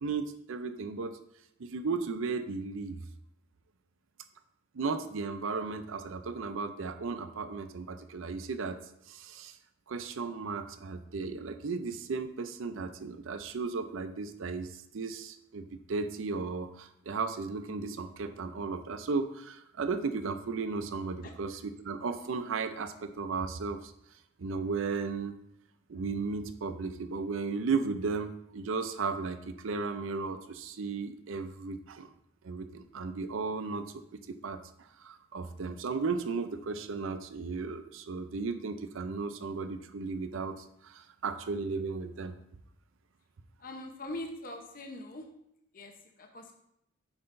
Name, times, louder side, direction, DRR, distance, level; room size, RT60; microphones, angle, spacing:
voice 1, 0.0-1.2 1.6-3.0 4.7-8.8 9.1-9.6 9.9-23.9 24.4-25.3 25.9-32.1 32.4-34.6 35.0-42.3, right 4 dB, 80° right, 10 dB, 0.5 m, -35 dB
voice 2, 43.6-45.2 45.7-45.9 46.2-46.5, left 1 dB, 45° left, 3 dB, 0.8 m, -42 dB
7.9 x 5.8 x 2.6 m, 0.78 s
head